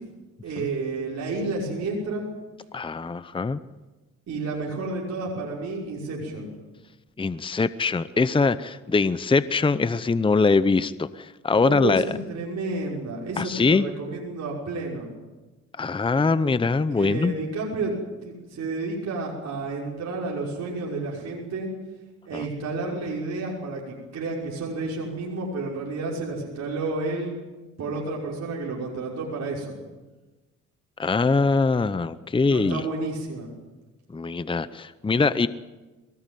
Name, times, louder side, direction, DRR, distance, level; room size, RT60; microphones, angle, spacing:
voice 1, 0.4-2.3 4.3-6.5 11.6-15.1 16.9-17.9 18.2-21.7 22.3-27.4 27.8-29.8 32.5-33.5, right 3 dB, 60° right, -3 dB, 5.9 m, -31 dB
voice 2, 2.7-3.6 7.2-12.0 13.4-13.8 15.8-17.3 22.3-22.4 31.0-32.8 34.1-35.5, left 4 dB, 15° left, 14 dB, 0.8 m, -22 dB
23.0 x 19.0 x 9.3 m, 1.2 s
cardioid pair, 90°, 30 cm